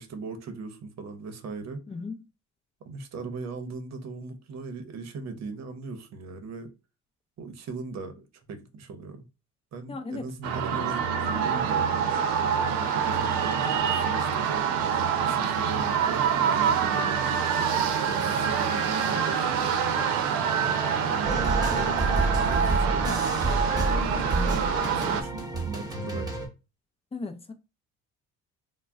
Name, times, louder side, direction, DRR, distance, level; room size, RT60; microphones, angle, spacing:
voice 1, 0.0-1.8 2.8-6.7 7.4-8.2 8.5-9.3 9.7-11.9 12.4-14.7 15.3-17.2 17.6-19.5 20.3-23.1 24.0-26.4, right 4 dB, 50° right, 0.8 m, -38 dB
voice 2, 1.9-2.2 9.9-10.3 27.1-27.5, left 3 dB, 15° left, 0.5 m, -36 dB
sound 1, 10.4-25.2, right 7 dB, 80° right, 0.6 m, -26 dB
sound 2, 21.2-26.5, right 2 dB, 10° right, 1.0 m, -29 dB
2.2 x 2.1 x 3.5 m
supercardioid pair, 75°, 34 cm